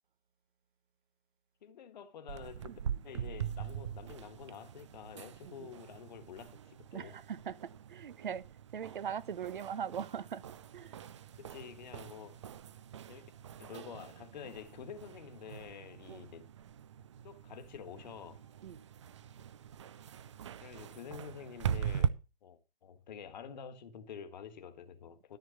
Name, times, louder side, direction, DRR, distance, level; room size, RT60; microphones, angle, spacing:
voice 1, 1.6-7.1 11.4-12.4 13.1-13.3 13.6-16.5 17.2-18.4 20.6-25.4, left 7 dB, 45° left, 1.6 m, -48 dB
sound 1, 2.3-22.1, right 9 dB, 30° right, 0.4 m, -42 dB
voice 2, 6.9-8.5 8.7-10.4 10.7-11.0 16.1-16.2 18.6-18.8, right 8 dB, 55° right, 0.9 m, -41 dB
13.5 x 4.5 x 7.1 m
figure-of-eight pair, 130°, 30 cm